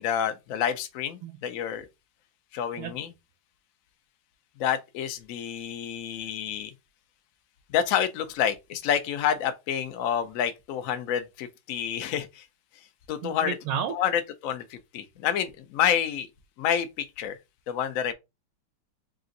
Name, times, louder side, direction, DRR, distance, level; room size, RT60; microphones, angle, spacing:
voice 1, 0.0-1.9 2.5-3.1 4.6-6.7 7.7-12.5 13.1-13.5 13.9-16.3 16.6-17.4 17.7-18.1, left 9 dB, 80° left, 0.7 m, -28 dB
voice 2, 13.2-13.9, right 8 dB, 85° right, 1.5 m, -31 dB
3.7 x 2.5 x 3.8 m
omnidirectional pair, 2.2 m